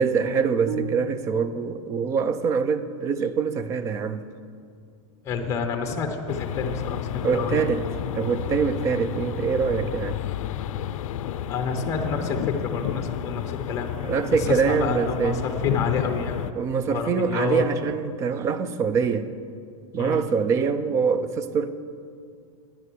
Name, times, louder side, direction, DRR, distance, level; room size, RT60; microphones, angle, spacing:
voice 1, 0.0-4.2 7.2-7.9 8.2-10.2 14.0-15.4 16.6-19.3 19.9-21.7, right 6 dB, 15° right, 0.3 m, -24 dB
sound 1, 0.7-1.7, right 4 dB, 50° right, 1.3 m, -34 dB
voice 2, 5.2-7.7 10.4-10.5 11.5-13.9 14.3-16.5 16.9-17.6 20.0-20.2, left 5 dB, 15° left, 0.7 m, -29 dB
sound 2, 6.3-16.5, left 10 dB, 80° left, 0.5 m, -31 dB
9.9 x 9.7 x 6.1 m
supercardioid pair, 165°, 17 cm